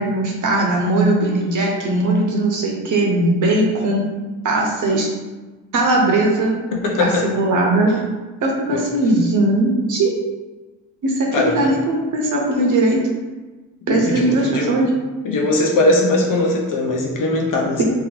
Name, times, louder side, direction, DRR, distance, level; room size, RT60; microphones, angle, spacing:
voice 1, 0.0-4.1 4.4-5.1 5.7-6.6 7.0-7.9 8.4-10.1 11.0-13.0 13.9-14.9, right 2 dB, 60° right, -1 dB, 1.0 m, -19 dB
voice 2, 6.7-7.2 8.7-8.8 11.3-11.7 13.9-14.8 15.2-17.8, left 2 dB, 65° left, 0 dB, 0.9 m, -20 dB
3.0 x 3.0 x 4.0 m, 1.2 s
cardioid pair, 75°, 34 cm